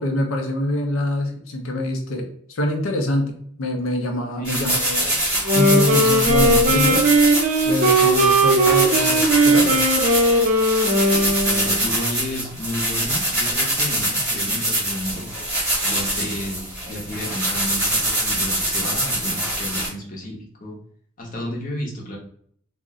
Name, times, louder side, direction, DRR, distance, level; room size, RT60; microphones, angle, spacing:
voice 1, 0.0-5.1 5.5-7.0 7.6-9.8, left 1 dB, 75° left, 2 dB, 0.5 m, -25 dB
voice 2, 4.4-4.8 11.4-15.3 15.8-20.8 21.2-22.2, left 1 dB, 40° left, -1 dB, 0.7 m, -32 dB
sound 1, 4.4-19.9, right 1 dB, 5° right, 1.0 m, -24 dB
Wind instrument woodwind instrument, 5.3-11.9, right 1 dB, 35° right, 0.5 m, -18 dB
2.5 x 2.0 x 3.6 m, 0.62 s
head